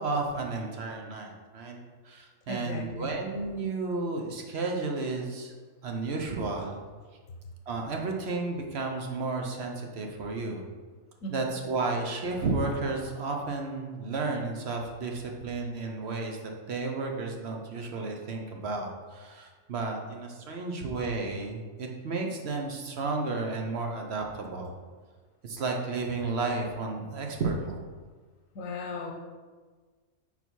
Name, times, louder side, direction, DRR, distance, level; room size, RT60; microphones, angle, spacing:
voice 1, 0.0-1.8 2.0-5.5 5.8-6.8 7.7-10.6 11.3-16.4 16.7-24.7 25.4-27.8, right 3 dB, 55° right, 2 dB, 0.9 m, -32 dB
voice 2, 2.5-3.1 11.2-11.4 28.5-29.1, left 2 dB, 85° left, 2 dB, 1.2 m, -36 dB
5.4 x 4.0 x 4.5 m, 1.4 s
omnidirectional pair, 1.4 m